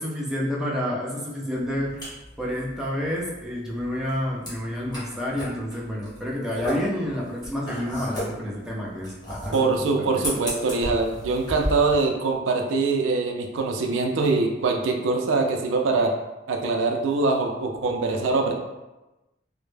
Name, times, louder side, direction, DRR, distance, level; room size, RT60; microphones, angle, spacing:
voice 1, 0.0-2.0 2.4-9.7 10.1-10.2, left 1 dB, 5° right, -5 dB, 0.4 m, -29 dB
sound 1, 1.5-11.9, equal, 20° left, 0.9 m, -35 dB
voice 2, 9.5-16.1 16.5-18.5, right 3 dB, 80° right, 2 dB, 0.4 m, -23 dB
2.1 x 2.0 x 3.1 m, 1.0 s
head